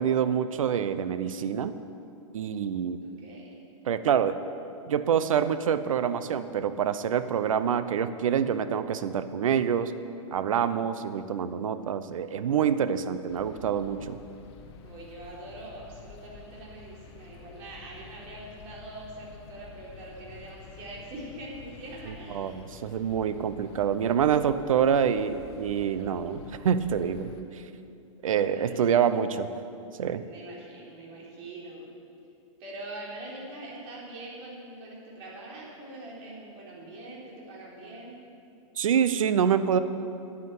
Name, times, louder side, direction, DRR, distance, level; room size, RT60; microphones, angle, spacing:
voice 1, 0.0-1.7 2.3-3.0 3.8-4.4 4.9-9.9 10.3-14.2 22.3-27.3 28.2-29.5 30.0-30.2 38.8-39.8, right 8 dB, 80° right, 12 dB, 0.8 m, -26 dB
voice 2, 3.0-3.5 14.8-22.6 28.5-29.4 30.2-31.9 32.6-38.2, right 1 dB, 40° right, -4 dB, 3.8 m, -43 dB
sound 1, 13.3-27.4, left 5 dB, 50° left, 1.2 m, -49 dB
10.0 x 9.4 x 8.0 m, 2.6 s
hypercardioid pair, 145°, 17 cm